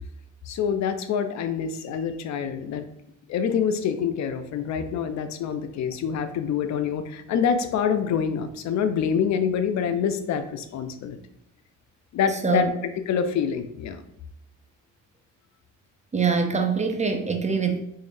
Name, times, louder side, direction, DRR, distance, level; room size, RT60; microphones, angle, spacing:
voice 1, 0.5-2.8 3.3-11.2 12.1-12.7 13.1-14.0, left 7 dB, 65° left, 9 dB, 0.5 m, -26 dB
voice 2, 16.1-17.8, right 5 dB, 25° right, 4 dB, 0.5 m, -24 dB
3.7 x 3.3 x 2.6 m, 0.78 s
cardioid pair, 90°, 30 cm